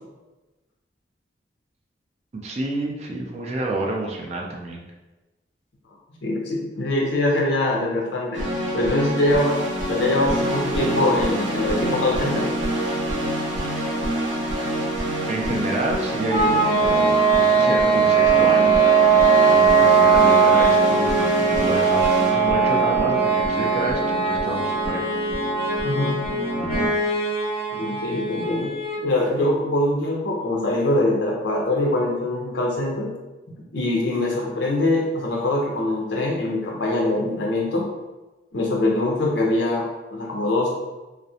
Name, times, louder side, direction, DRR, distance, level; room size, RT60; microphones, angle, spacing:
voice 1, 2.4-4.8 15.3-25.1 26.5-27.0, right 2 dB, 35° right, 0 dB, 0.3 m, -29 dB
voice 2, 6.2-8.4 8.7-9.6 9.9-12.5 25.8-26.2 27.7-28.7 29.0-33.1 33.7-37.9 38.5-40.7, left 1 dB, 75° left, -1 dB, 0.6 m, -23 dB
sound 1, 8.3-26.9, equal, 85° right, 0.6 m, -27 dB
sound 2, 16.3-29.1, right 5 dB, 50° left, 0.9 m, -19 dB
2.4 x 2.0 x 2.7 m, 1.1 s
head